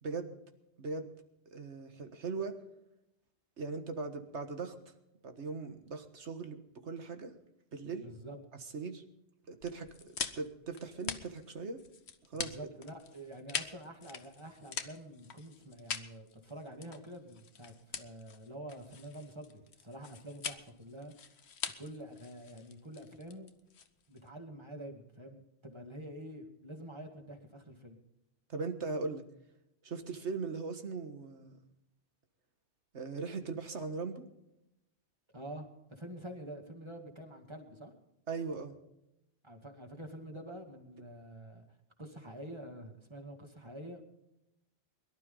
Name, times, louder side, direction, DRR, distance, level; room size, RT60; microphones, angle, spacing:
voice 1, 0.0-0.4 0.8-1.1 1.5-2.6 3.6-4.8 5.2-7.3 7.7-8.1 8.6-9.1 9.5-11.8 12.3-12.6 28.5-29.2 29.8-31.6 32.9-34.3 38.3-38.8, right 4 dB, 85° right, 7 dB, 1.8 m, -39 dB
voice 2, 8.0-8.4 12.3-21.1 21.8-23.5 24.1-28.0 35.3-37.9 39.4-41.6 42.0-44.0, right 1 dB, 25° right, 2 dB, 2.3 m, -47 dB
sound 1, 9.6-24.3, left 6 dB, 70° left, 1.3 m, -43 dB
22.5 x 12.0 x 3.9 m, 0.87 s
omnidirectional pair, 1.1 m